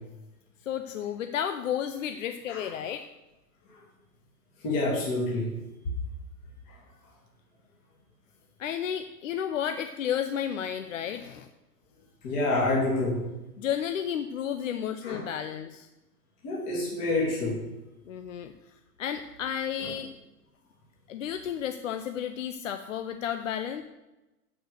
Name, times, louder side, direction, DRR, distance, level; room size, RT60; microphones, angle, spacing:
voice 1, 0.6-3.1 8.6-11.5 13.6-15.9 18.1-18.5 19.0-20.1 21.1-23.8, left 9 dB, 55° left, 8 dB, 0.7 m, -32 dB
voice 2, 4.6-5.5 12.2-13.2 15.0-15.2 16.4-17.6 19.8-19.9, left 2 dB, 30° left, -5 dB, 2.8 m, -27 dB
13.0 x 5.1 x 6.4 m, 1.0 s
hypercardioid pair, 165°, 47 cm